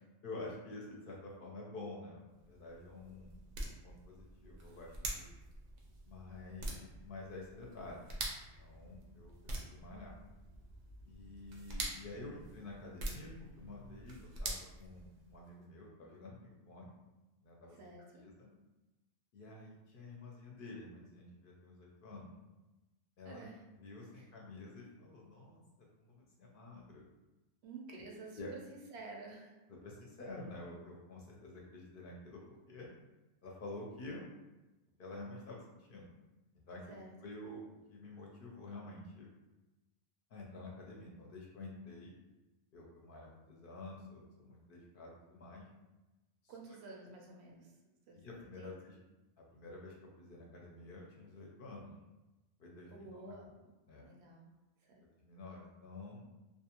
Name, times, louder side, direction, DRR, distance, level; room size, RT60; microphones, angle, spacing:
voice 1, 0.2-5.3 6.1-8.1 8.6-10.1 11.0-16.9 17.4-17.8 18.1-18.5 19.3-22.3 23.2-23.4 23.8-25.6 26.0-27.0 28.4-28.5 29.7-32.9 33.4-34.2 35.0-36.1 36.7-37.6 37.9-39.3 40.3-42.1 42.7-45.7 46.4-46.5 48.1-49.0 49.4-51.9 52.6-53.3 53.9-54.1 55.2-56.2, left 2 dB, 60° left, -2 dB, 0.6 m, -49 dB
sound 1, 2.3-15.5, right 2 dB, 55° right, 0.5 m, -46 dB
voice 2, 17.7-18.3 23.2-23.6 24.1-24.3 27.6-29.5 36.9-37.1 46.5-47.7 48.1-48.2 48.6-48.7 52.9-53.7 54.0-54.5 54.8-55.0, right 3 dB, 75° right, -1 dB, 0.8 m, -51 dB
2.5 x 2.3 x 2.8 m, 1.1 s
omnidirectional pair, 1.1 m